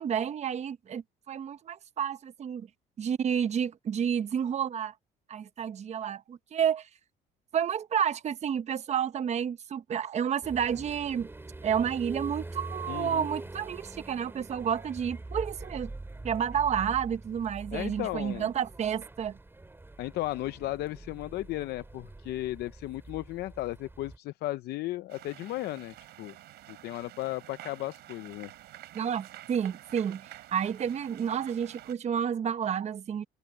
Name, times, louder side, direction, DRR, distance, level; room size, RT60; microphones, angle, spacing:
voice 1, 0.0-2.7 3.0-4.9 5.3-6.9 7.5-11.3 11.6-15.9 16.2-19.4 28.9-33.2, right 8 dB, 40° right, 0.9 m, -30 dB
sound 1, 10.4-24.2, right 2 dB, 15° right, 5.0 m, -44 dB
voice 2, 12.9-13.3 17.7-18.5 20.0-26.4 26.7-28.5, left 16 dB, 75° left, 0.7 m, -35 dB
sound 2, 25.1-31.9, right 15 dB, 75° right, 5.2 m, -49 dB
cardioid pair, 110°, 17 cm